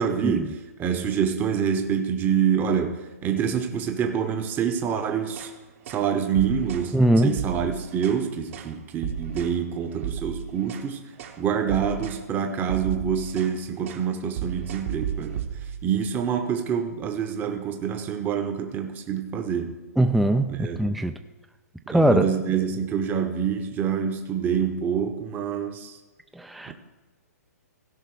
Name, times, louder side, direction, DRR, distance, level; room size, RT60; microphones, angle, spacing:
voice 1, 0.0-5.5 5.9-11.1 11.4-15.5 15.8-19.8 20.5-20.8 21.9-26.0 26.7-26.8, right 7 dB, 20° right, 0.8 m, -26 dB
sound 1, 5.2-5.5 5.9-6.1 6.4-6.9 7.3-8.2 8.5-8.7 9.0-9.6 9.9-10.9 11.2-11.4 11.7-12.2 12.5-13.6 13.8-14.1 14.4-15.9, right 9 dB, 50° right, 1.1 m, -34 dB
voice 2, 6.9-7.3 20.0-21.1 21.9-22.3 26.4-26.7, right 1 dB, ahead, 0.3 m, -21 dB
16.0 x 5.7 x 4.7 m
hypercardioid pair, 135°, 9 cm